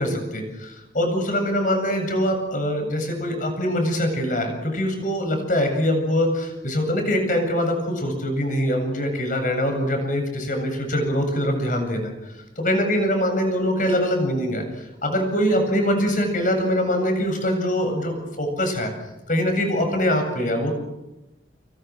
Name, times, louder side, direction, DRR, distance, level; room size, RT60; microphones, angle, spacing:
voice 1, 0.0-12.1 12.6-14.6 15.0-18.9 19.3-20.7, equal, 45° left, 5 dB, 7.8 m, -23 dB
29.5 x 27.5 x 6.4 m, 0.96 s
head